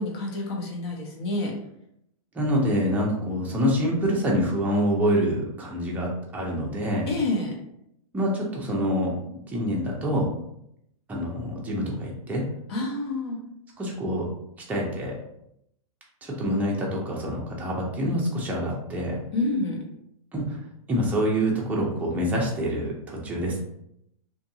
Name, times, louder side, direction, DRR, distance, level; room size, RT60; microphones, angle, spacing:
voice 1, 0.0-1.5 7.1-7.5 12.7-13.4 19.3-19.8, left 2 dB, 45° left, -1 dB, 0.9 m, -28 dB
voice 2, 2.3-7.1 8.1-10.3 11.1-12.4 13.8-14.3 14.7-15.2 16.2-19.2 20.3-20.6 20.9-23.6, equal, 10° right, -3 dB, 0.5 m, -26 dB
2.6 x 2.5 x 2.7 m, 0.77 s
hypercardioid pair, 145°, 18 cm